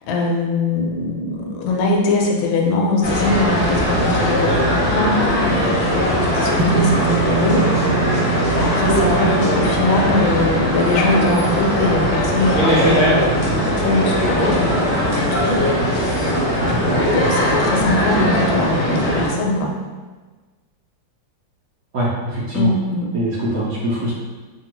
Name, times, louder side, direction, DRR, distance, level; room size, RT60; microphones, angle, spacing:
voice 1, 0.1-7.7 8.0-19.7 22.5-23.1, left 2 dB, 80° left, 0 dB, 1.3 m, -22 dB
sound 1, 3.0-19.3, equal, 50° left, 0.7 m, -19 dB
sound 2, 6.6-15.0, right 6 dB, 80° right, 1.4 m, -27 dB
voice 2, 21.9-22.7 23.1-24.1, right 1 dB, 65° right, -7 dB, 0.9 m, -23 dB
2.9 x 2.7 x 2.9 m, 1.3 s
omnidirectional pair, 2.1 m